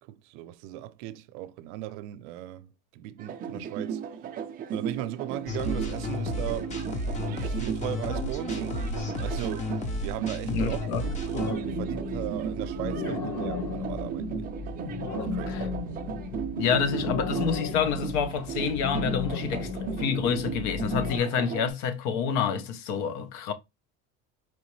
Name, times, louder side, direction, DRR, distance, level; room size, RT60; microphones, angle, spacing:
voice 1, 0.0-4.0 4.7-6.8 7.2-14.5 15.1-15.7, right 14 dB, 85° right, 0.6 m, -38 dB
sound 1, 3.2-21.7, right 7 dB, 25° right, 0.5 m, -35 dB
sound 2, 5.5-11.5, left 1 dB, 20° left, 0.6 m, -32 dB
voice 2, 10.5-11.0 15.5-15.7 16.5-19.7 20.0-23.5, left 7 dB, 70° left, 0.8 m, -28 dB
sound 3, 11.3-21.2, left 4 dB, 50° left, 1.3 m, -35 dB
4.6 x 3.1 x 3.1 m
cardioid pair, 160°, 34 cm